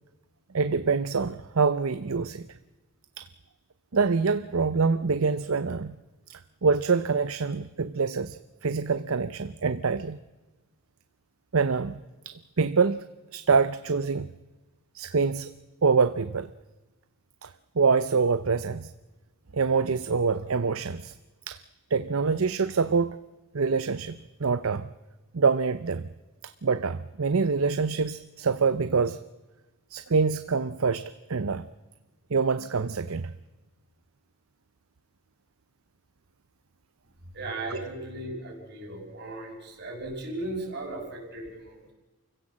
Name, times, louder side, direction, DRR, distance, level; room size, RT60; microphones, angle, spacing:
voice 1, 0.5-2.4 3.2-3.3 3.9-5.9 6.3-10.2 11.5-12.0 12.3-13.0 13.3-14.3 14.9-15.5 15.8-16.5 17.4-17.5 17.8-18.9 19.5-21.1 21.5-21.6 21.9-23.2 23.5-24.9 25.3-26.0 26.6-29.2 29.9-31.7 32.3-33.3 37.7-37.8, right 5 dB, 65° right, 13 dB, 0.7 m, -25 dB
voice 2, 37.3-41.8, right 2 dB, 50° right, 0 dB, 6.1 m, -36 dB
28.5 x 16.0 x 7.4 m, 1.2 s
head